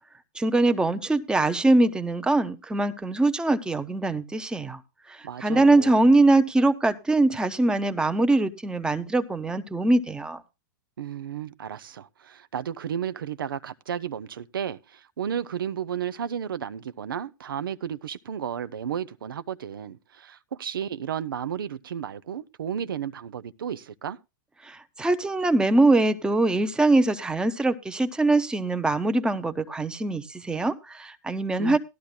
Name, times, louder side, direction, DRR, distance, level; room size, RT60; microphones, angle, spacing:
voice 1, 0.4-4.8 5.1-10.4 24.6-31.8, right 2 dB, 5° right, 0.8 m, -22 dB
voice 2, 5.2-6.1 11.0-24.2 31.6-31.8, right 8 dB, 85° right, 0.5 m, -33 dB
17.5 x 12.0 x 2.2 m
hypercardioid pair, 115°, 11 cm